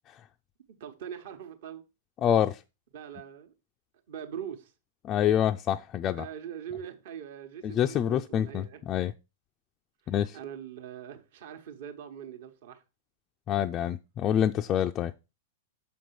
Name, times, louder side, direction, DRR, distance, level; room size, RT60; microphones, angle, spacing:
voice 1, 0.8-1.8 2.9-3.5 4.1-4.7 6.2-8.8 10.0-12.8, right 9 dB, 55° right, 1.1 m, -42 dB
voice 2, 2.2-2.6 5.0-6.3 7.6-9.1 10.1-10.4 13.5-15.1, left 10 dB, 30° left, 0.3 m, -26 dB
7.0 x 5.2 x 4.6 m
figure-of-eight pair, 100°, 0 cm